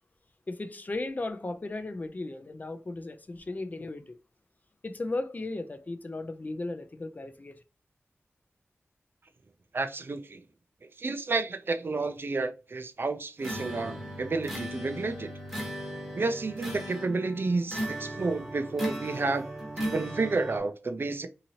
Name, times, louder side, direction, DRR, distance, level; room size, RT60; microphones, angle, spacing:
voice 1, 0.5-4.2 4.8-7.6, left 2 dB, 35° left, 0.4 m, -36 dB
voice 2, 9.7-10.4 11.0-15.3 16.2-19.5 19.8-21.3, right 3 dB, 50° right, 0.4 m, -30 dB
sound 1, 13.4-20.6, equal, ahead, 1.0 m, -37 dB
2.8 x 2.7 x 2.8 m
wide cardioid pair, 80°, 5 cm